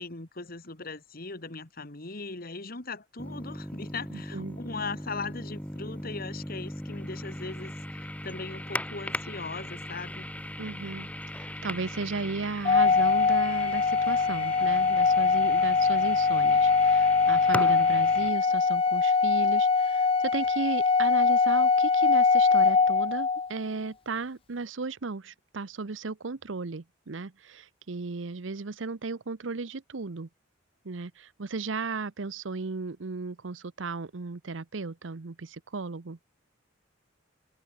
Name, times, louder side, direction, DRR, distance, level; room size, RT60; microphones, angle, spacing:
voice 1, 0.0-10.3, left 4 dB, 50° left, 2.1 m, -39 dB
sound 1, 3.2-18.3, left 1 dB, 5° left, 3.9 m, -39 dB
voice 2, 4.1-4.6 10.6-30.3 30.8-36.2, right 4 dB, 80° right, 0.8 m, -35 dB
Organ, 12.6-23.5, left 4 dB, 30° left, 0.5 m, -22 dB
open air
head